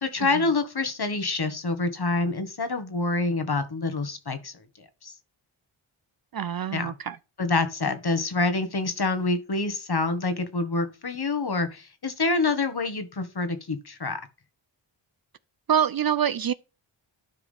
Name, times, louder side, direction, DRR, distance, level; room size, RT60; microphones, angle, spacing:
voice 1, 0.0-4.5 5.0-5.1 6.7-6.9 7.4-14.2, left 3 dB, 50° left, 1.7 m, -27 dB
voice 2, 6.3-7.2 15.7-16.5, right 8 dB, 45° right, 0.5 m, -25 dB
12.0 x 4.8 x 3.5 m
cardioid pair, 45°, 49 cm